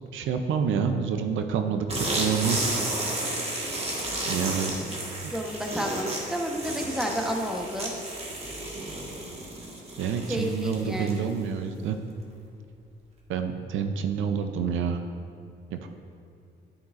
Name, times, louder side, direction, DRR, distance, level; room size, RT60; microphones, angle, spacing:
voice 1, 0.1-2.6 4.3-4.8 10.0-12.0 13.3-15.0 15.7-15.9, right 7 dB, 80° right, 6 dB, 0.5 m, -28 dB
sound 1, 1.9-11.4, right 1 dB, 30° right, 1.5 m, -32 dB
voice 2, 5.3-7.9 10.3-11.3, equal, ahead, 1 dB, 1.0 m, -31 dB
9.5 x 8.9 x 2.5 m, 2.4 s
cardioid pair, 90°, 20 cm